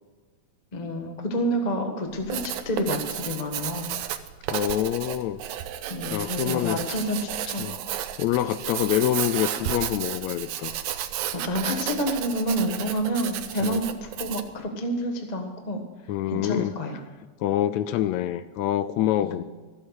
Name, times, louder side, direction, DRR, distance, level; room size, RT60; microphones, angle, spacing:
voice 1, 0.7-3.9 5.9-7.7 11.3-15.8 16.3-17.0 19.2-19.4, equal, 45° left, 4 dB, 0.5 m, -29 dB
Writing, 2.1-14.6, right 11 dB, 85° right, 2.1 m, -32 dB
voice 2, 4.5-5.4 6.1-6.8 7.6-7.8 8.2-10.7 13.6-13.8 16.1-16.7 17.4-19.4, left 12 dB, 80° left, 13 dB, 1.8 m, -26 dB
14.0 x 7.9 x 6.4 m, 1.3 s
omnidirectional pair, 3.4 m